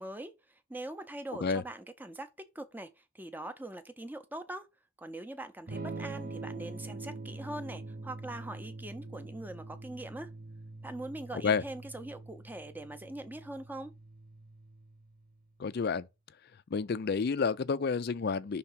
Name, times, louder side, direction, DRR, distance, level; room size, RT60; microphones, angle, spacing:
voice 1, 0.0-2.3 2.5-4.7 5.0-10.3 10.8-13.9, right 1 dB, 10° right, 0.6 m, -42 dB
Electric guitar / Strum, 5.7-15.4, right 2 dB, 40° right, 0.9 m, -44 dB
voice 2, 15.6-16.1 16.7-18.6, left 5 dB, 45° left, 0.4 m, -29 dB
5.8 x 3.5 x 5.6 m
head